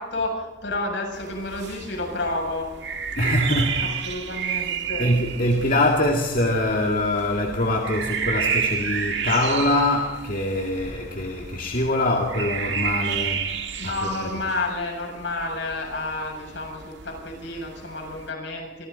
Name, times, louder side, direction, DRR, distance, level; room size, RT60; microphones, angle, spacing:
voice 1, 0.0-2.7 3.8-5.1 13.8-18.9, left 2 dB, 75° left, 1 dB, 7.7 m, -30 dB
sound 1, 1.1-18.3, right 7 dB, 75° right, 1.9 m, -32 dB
voice 2, 3.2-14.4, left 1 dB, 50° left, 0 dB, 2.1 m, -24 dB
29.0 x 24.0 x 4.2 m, 1.1 s
head